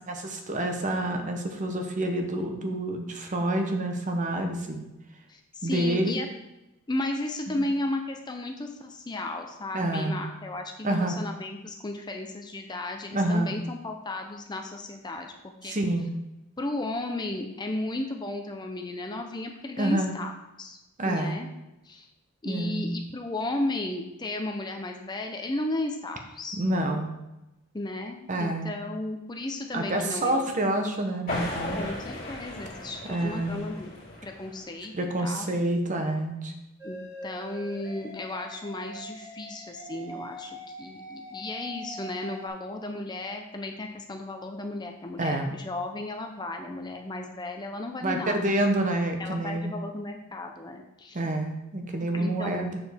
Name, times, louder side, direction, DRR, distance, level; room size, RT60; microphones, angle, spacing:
voice 1, 0.1-4.8 5.6-6.2 7.5-7.6 9.7-10.3 10.8-11.2 13.1-13.5 15.6-16.1 19.8-20.1 21.0-21.4 22.4-22.9 26.5-27.1 28.3-28.8 29.7-31.8 33.1-33.5 34.9-36.5 45.2-45.5 48.0-49.7 51.1-52.8, right 1 dB, 35° right, 4 dB, 0.9 m, -28 dB
voice 2, 5.3-6.3 6.9-15.8 16.6-20.3 20.6-20.8 21.1-21.5 21.8-22.1 22.4-26.6 27.7-30.6 31.8-34.0 34.2-34.9 35.2-35.5 36.8-37.0 37.2-40.5 40.8-48.4 49.2-51.2 52.1-52.6, left 2 dB, 20° left, 3 dB, 0.5 m, -34 dB
sound 1, 31.3-34.8, left 1 dB, 40° left, 2.4 m, -36 dB
sound 2, 36.8-42.5, equal, 15° right, 2.0 m, -43 dB
7.0 x 6.6 x 3.5 m, 0.95 s
head